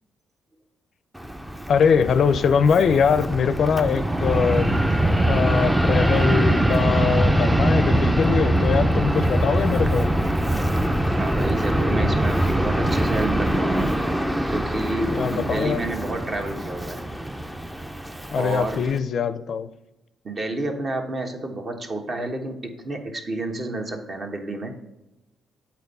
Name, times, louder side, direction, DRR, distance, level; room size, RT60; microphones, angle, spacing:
Fixed-wing aircraft airplane, 1.2-19.0, right 1 dB, 5° right, 0.5 m, -23 dB
voice 1, 1.7-4.7 5.3-10.1 15.1-15.8 18.3-19.7, left 6 dB, 60° left, 14 dB, 0.4 m, -22 dB
voice 2, 11.1-13.9 14.5-17.0 18.3-18.8 20.2-24.7, right 2 dB, 40° right, 4 dB, 1.3 m, -30 dB
8.1 x 4.4 x 5.4 m, 0.97 s
cardioid pair, 90°, 0 cm